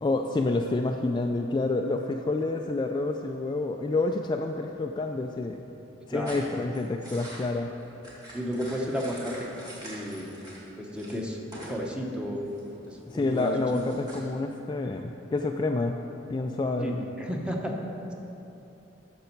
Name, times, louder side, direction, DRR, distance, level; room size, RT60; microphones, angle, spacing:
voice 1, 0.0-5.6 6.1-7.7 13.1-16.0 16.3-17.0, left 2 dB, 25° left, 3 dB, 0.3 m, -28 dB
voice 2, 6.1-6.4 8.3-9.5 9.8-10.3 10.8-11.4 11.6-12.5 12.9-13.5 16.8-17.8, equal, 5° right, 0 dB, 1.0 m, -32 dB
sound 1, 6.3-10.7 11.0-11.8 12.1-14.2, right 1 dB, 20° right, 2.3 m, -45 dB
12.0 x 6.9 x 4.5 m, 3.0 s
head